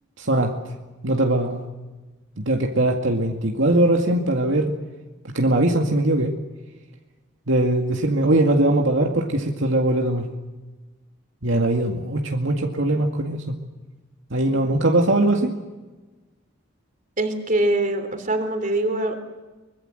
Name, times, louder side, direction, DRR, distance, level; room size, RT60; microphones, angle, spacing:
voice 1, 0.2-0.5 1.0-1.6 2.4-4.7 5.3-6.3 7.5-10.3 11.4-13.6 14.3-15.5, right 1 dB, 70° right, 2 dB, 2.2 m, -21 dB
voice 2, 17.2-19.2, right 1 dB, 40° right, 6 dB, 3.5 m, -23 dB
24.0 x 22.0 x 7.9 m, 1.2 s
head